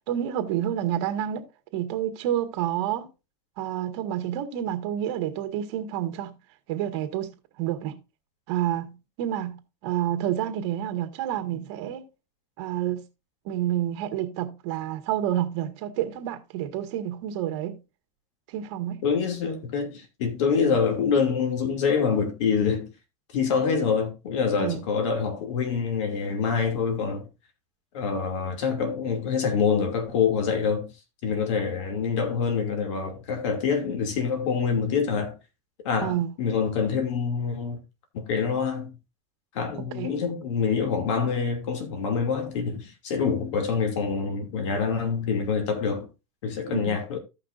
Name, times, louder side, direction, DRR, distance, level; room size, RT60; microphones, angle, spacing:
voice 1, 0.1-1.4 1.7-3.1 3.6-6.3 6.7-8.0 8.5-12.0 12.6-13.0 13.4-17.8 18.5-19.0 24.6-24.8 36.0-36.3 39.9-40.1 46.7-47.0, right 11 dB, 65° right, 1.6 m, -29 dB
voice 2, 19.0-22.9 23.3-27.3 27.9-30.9 31.2-35.3 35.8-37.8 38.1-39.0 39.5-46.1 46.4-47.2, left 6 dB, 80° left, 2.7 m, -26 dB
15.0 x 5.8 x 2.6 m
supercardioid pair, 145°, 15 cm